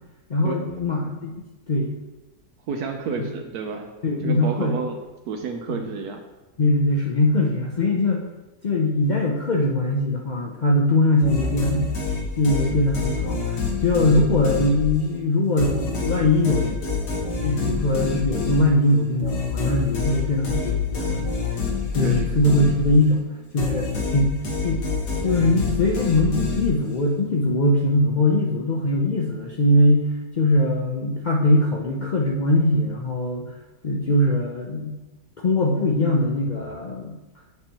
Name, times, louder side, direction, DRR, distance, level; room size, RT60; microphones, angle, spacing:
voice 1, 0.3-1.3 1.7-2.0 4.0-4.8 5.7-5.8 6.6-8.2 8.6-11.9 12.4-16.8 17.4-21.3 21.9-23.3 23.5-24.4 24.6-24.9 25.2-33.6 33.8-35.0 35.4-37.1, left 1 dB, 65° left, -1 dB, 0.4 m, -21 dB
voice 2, 2.7-3.9 4.2-5.0 5.3-6.2 22.0-22.3, right 5 dB, 75° right, 4 dB, 1.1 m, -30 dB
sound 1, 11.2-15.2 15.6-23.2 23.6-27.0, left 4 dB, 90° left, 1.9 m, -27 dB
7.8 x 6.9 x 2.9 m, 1.1 s
omnidirectional pair, 1.8 m